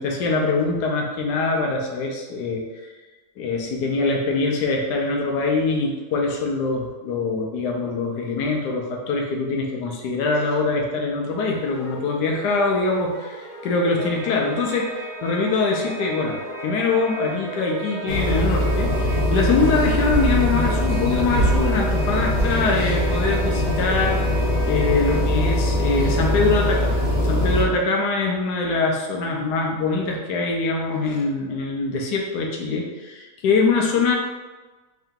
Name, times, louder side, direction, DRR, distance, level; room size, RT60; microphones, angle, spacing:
voice 1, 0.0-2.7 3.4-34.2, left 3 dB, 90° left, 0 dB, 1.2 m, -23 dB
sound 1, 11.3-18.7, equal, ahead, 1.2 m, -39 dB
sound 2, 14.0-25.2, right 3 dB, 70° right, 0.9 m, -36 dB
sound 3, 18.1-27.6, left 1 dB, 50° left, 0.8 m, -21 dB
3.7 x 2.8 x 3.6 m, 1.2 s
omnidirectional pair, 1.7 m